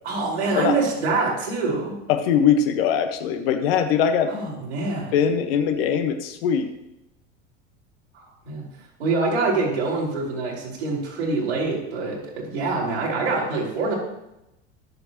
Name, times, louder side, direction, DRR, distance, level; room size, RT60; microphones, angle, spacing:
voice 1, 0.0-2.0 4.3-5.3 8.1-8.6 9.0-13.9, right 3 dB, 65° right, -4 dB, 5.1 m, -25 dB
voice 2, 2.1-4.3 5.1-6.7, left 7 dB, 55° left, 7 dB, 1.4 m, -21 dB
23.0 x 7.8 x 3.0 m, 0.89 s
figure-of-eight pair, 80°, 35 cm